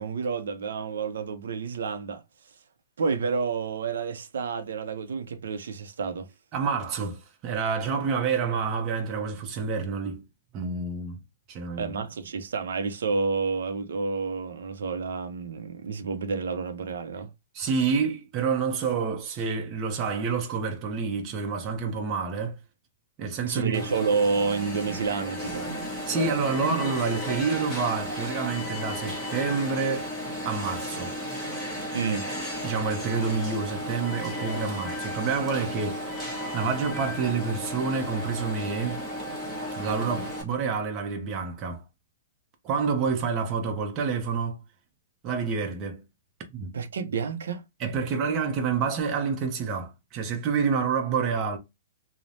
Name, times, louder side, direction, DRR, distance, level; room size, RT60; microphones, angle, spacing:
voice 1, 0.0-2.2 3.0-6.3 11.8-17.3 23.5-25.7 31.9-32.3 46.7-47.6, right 5 dB, 80° right, 0.5 m, -29 dB
voice 2, 6.5-10.2 10.5-11.2 11.5-11.9 17.5-22.6 23.2-23.8 26.1-30.1 30.4-31.1 32.6-36.3 36.5-39.0 39.7-41.8 42.6-44.6 45.2-46.0 46.5-46.7 47.8-51.6, right 5 dB, 25° right, 0.6 m, -28 dB
Alarm, 23.7-40.4, equal, ahead, 1.0 m, -34 dB
3.1 x 2.0 x 2.6 m
hypercardioid pair, 160°, 0 cm